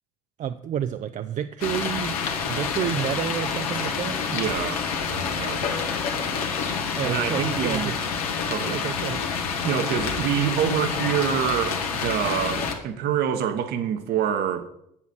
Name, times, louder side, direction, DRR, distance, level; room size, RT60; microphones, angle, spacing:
voice 1, 0.4-2.2 2.4-4.2 6.9-7.9 8.7-9.2 9.7-9.8, right 9 dB, 45° right, 0.5 m, -29 dB
sound 1, 1.6-12.7, left 6 dB, 85° left, 1.3 m, -28 dB
sound 2, 1.9-6.9, left 5 dB, 65° left, 1.6 m, -41 dB
voice 2, 4.3-5.7 7.0-7.9 8.5-8.8 9.6-14.7, right 9 dB, 60° right, 1.1 m, -26 dB
8.0 x 7.4 x 6.0 m
hypercardioid pair, 55°, 19 cm